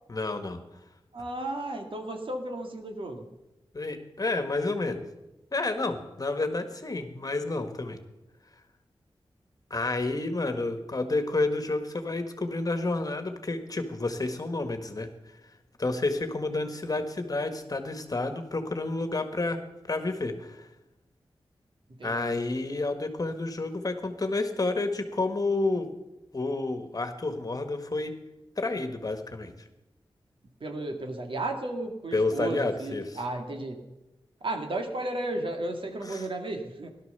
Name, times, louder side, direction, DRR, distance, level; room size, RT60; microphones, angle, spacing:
voice 1, 0.1-0.6 3.7-5.0 5.5-8.0 9.7-15.1 15.8-19.6 19.9-20.7 22.0-25.9 26.3-28.1 28.6-29.5 32.1-33.2 36.0-36.2, left 2 dB, 40° left, 7 dB, 1.7 m, -30 dB
voice 2, 1.1-3.3 21.9-22.3 30.6-33.9 34.4-36.9, right 2 dB, 65° right, 4 dB, 2.3 m, -34 dB
17.0 x 12.0 x 6.8 m, 0.99 s
wide cardioid pair, 90°, 9 cm